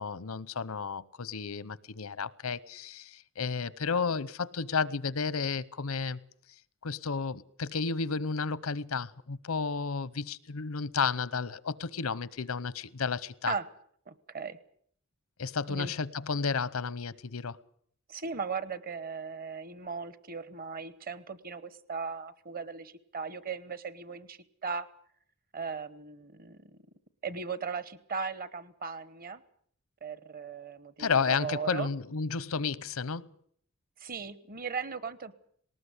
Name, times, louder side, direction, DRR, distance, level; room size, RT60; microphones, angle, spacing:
voice 1, 0.0-6.2 6.8-13.5 15.4-17.6 31.0-33.3, left 5 dB, 90° left, 0.8 m, -32 dB
voice 2, 14.1-14.6 15.7-15.9 18.1-24.9 25.5-26.8 27.2-29.4 30.0-31.9 34.0-35.3, right 5 dB, 45° right, 1.1 m, -37 dB
19.0 x 19.0 x 8.2 m
head